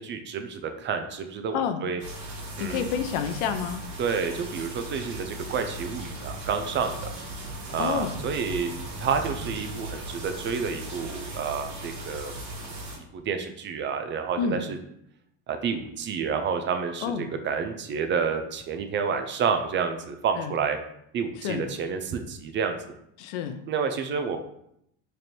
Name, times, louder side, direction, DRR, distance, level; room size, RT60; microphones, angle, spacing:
voice 1, 0.0-2.0 2.6-2.9 4.0-7.2 7.7-12.3 12.9-14.8 15.5-20.8 21.1-22.8 23.7-24.4, right 6 dB, 30° right, 7 dB, 0.4 m, -29 dB
sound 1, 2.0-13.0, right 1 dB, 50° right, 1.5 m, -37 dB
voice 2, 2.6-3.8 7.8-8.1 14.4-14.6 17.0-17.3 20.4-20.5 21.4-21.6 23.2-23.6, left 7 dB, 75° left, 9 dB, 0.6 m, -28 dB
3.3 x 2.5 x 4.2 m, 0.75 s
supercardioid pair, 100°, 36 cm